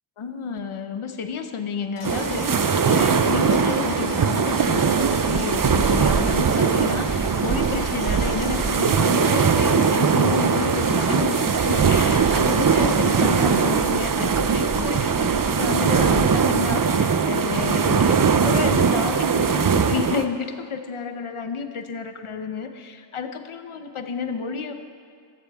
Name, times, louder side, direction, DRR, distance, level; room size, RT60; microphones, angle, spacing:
voice 1, 0.2-24.7, left 5 dB, 85° left, 7 dB, 0.9 m, -30 dB
sound 1, 2.0-13.9, left 2 dB, 60° left, 1.6 m, -37 dB
sound 2, 2.0-20.2, right 6 dB, 45° right, 0.6 m, -20 dB
15.0 x 14.5 x 3.6 m, 2.2 s
wide cardioid pair, 65°, 48 cm